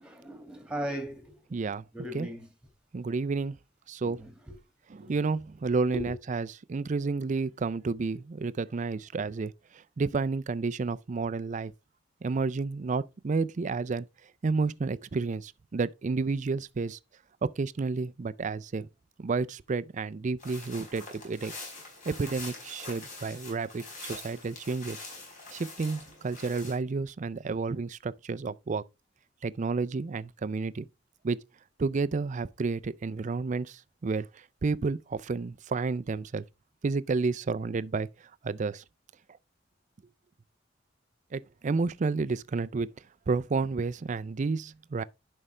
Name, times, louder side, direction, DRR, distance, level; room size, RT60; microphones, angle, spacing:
voice 1, 0.0-1.6 1.9-2.5 4.0-4.6 5.9-6.2, equal, 5° right, 1.8 m, -38 dB
voice 2, 1.5-1.8 2.1-2.3 2.9-3.6 3.9-4.2 4.9-11.7 12.2-14.1 14.4-17.0 17.6-18.9 19.2-21.5 22.1-25.0 25.5-28.8 29.4-30.9 31.2-31.4 31.8-36.4 36.8-38.1 38.4-38.8 41.3-42.9 43.3-45.0, right 4 dB, 40° right, 0.4 m, -31 dB
sound 1, 20.4-26.8, left 3 dB, 40° left, 4.6 m, -44 dB
11.0 x 5.4 x 3.3 m
head